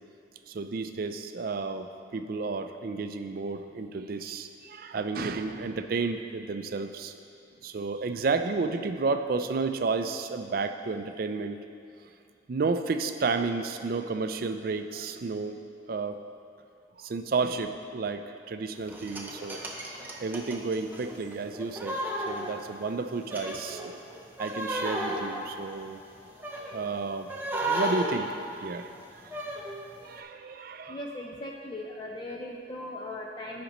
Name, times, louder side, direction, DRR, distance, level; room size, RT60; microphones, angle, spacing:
voice 1, 0.5-7.1 7.6-11.6 12.5-15.6 15.9-16.2 17.0-24.0 24.4-26.0 26.5-27.3 27.6-29.2 30.0-31.0, right 4 dB, 50° right, 8 dB, 0.4 m, -32 dB
sound 1, 18.9-22.9 23.3-26.8 27.3-29.8 30.2-30.3, right 1 dB, 10° right, 0.7 m, -34 dB
voice 2, 30.9-33.6, left 1 dB, 25° left, -1 dB, 0.4 m, -38 dB
15.0 x 5.1 x 3.0 m, 2.6 s
head